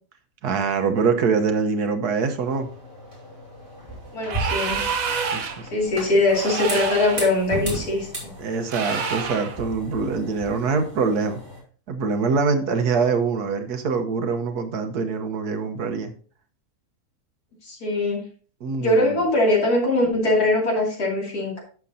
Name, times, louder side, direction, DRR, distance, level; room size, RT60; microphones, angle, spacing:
voice 1, 0.4-2.7 5.3-5.6 8.4-11.4 11.9-16.1 18.6-19.1, right 5 dB, 85° right, 7 dB, 1.6 m, -24 dB
sound 1, 2.3-11.6, right 1 dB, 20° right, 2.8 m, -36 dB
voice 2, 4.1-4.8 5.7-8.3 17.6-18.2 18.8-21.6, left 2 dB, 80° left, -2 dB, 3.2 m, -22 dB
sound 2, 4.2-5.7 6.3-7.3 8.7-9.6, right 5 dB, 65° right, 1.4 m, -28 dB
11.0 x 7.1 x 2.7 m, 0.41 s
omnidirectional pair, 1.6 m